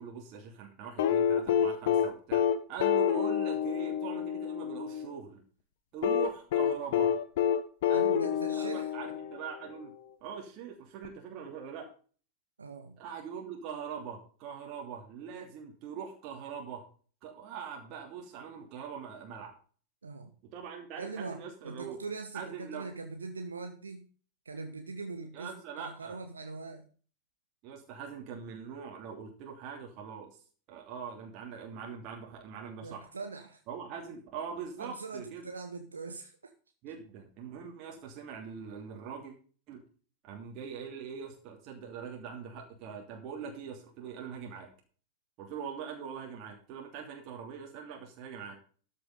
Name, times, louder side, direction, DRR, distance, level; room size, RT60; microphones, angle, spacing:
voice 1, 0.0-2.4 2.7-5.4 5.9-7.1 7.9-9.9 10.2-11.9 13.0-16.8 17.2-19.6 20.5-22.0 22.3-22.9 25.3-26.2 27.6-30.3 30.7-33.1 33.7-35.5 36.8-39.3 39.7-39.8 40.2-44.7 45.4-48.6, right 7 dB, 40° right, 1 dB, 2.9 m, -42 dB
sound 1, 1.0-5.1 6.0-9.6 11.0-11.1, left 8 dB, 55° left, 1.5 m, -28 dB
voice 2, 7.9-8.9 12.6-13.0 20.0-20.3 21.0-24.1 24.4-26.8 32.8-33.6 34.8-36.5, right 4 dB, 75° right, 5 dB, 1.3 m, -42 dB
13.0 x 7.0 x 5.3 m, 0.41 s
figure-of-eight pair, 90°, 0 cm